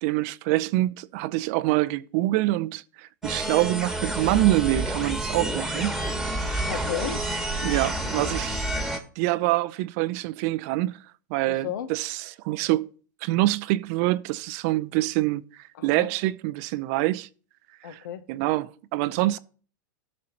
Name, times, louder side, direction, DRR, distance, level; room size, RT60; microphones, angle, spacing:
voice 1, 0.0-6.0 6.4-6.7 7.6-8.6 9.2-11.0 11.3-12.9 13.2-17.3 17.8-18.0 18.3-19.4, right 17 dB, 50° right, 0.5 m, -25 dB
sound 1, 3.2-9.0, right 1 dB, ahead, 1.5 m, -29 dB
voice 2, 6.7-7.3 11.4-11.9 15.8-16.1 17.8-18.2, left 9 dB, 70° left, 0.9 m, -33 dB
17.0 x 6.3 x 2.9 m
hypercardioid pair, 105°, 11 cm